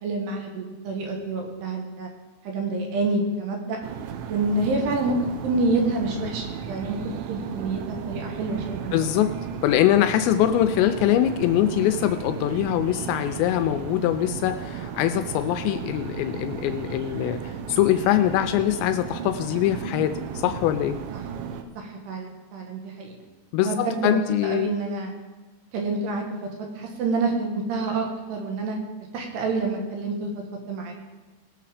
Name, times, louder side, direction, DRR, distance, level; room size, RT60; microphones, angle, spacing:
voice 1, 0.0-2.1 2.4-3.8 4.3-5.2 5.4-7.0 7.3-8.9 21.8-23.2 23.6-25.1 25.7-28.8 29.1-30.3 30.7-30.9, right 3 dB, 70° right, 1 dB, 3.2 m, -27 dB
sound 1, 3.8-21.6, right 7 dB, 90° right, 3.1 m, -35 dB
voice 2, 8.9-9.3 9.6-21.0 23.5-24.7, left 12 dB, 85° left, 8 dB, 2.7 m, -23 dB
19.5 x 6.9 x 4.9 m, 1.2 s
omnidirectional pair, 5.2 m